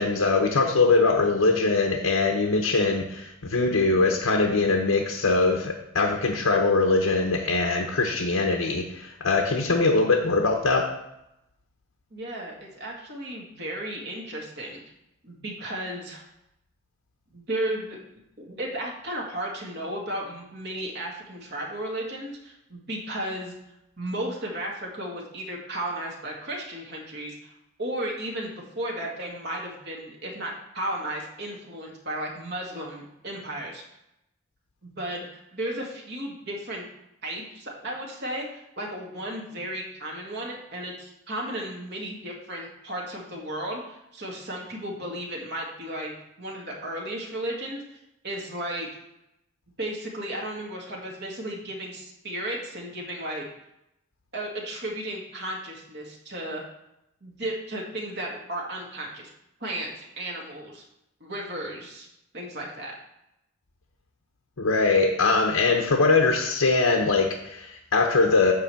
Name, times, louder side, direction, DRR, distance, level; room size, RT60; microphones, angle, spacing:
voice 1, 0.0-10.9 64.6-68.5, left 3 dB, 80° left, 2 dB, 0.9 m, -22 dB
voice 2, 12.1-14.8 15.2-16.2 17.3-18.0 18.4-23.5 24.0-27.5 27.8-33.8 34.8-35.3 35.5-36.8 37.2-48.9 49.8-53.5 54.3-56.6 57.2-59.3 59.6-60.8 61.2-62.1 62.3-62.9, right 1 dB, 50° right, -2 dB, 2.0 m, -34 dB
9.8 x 3.3 x 6.9 m, 0.84 s
head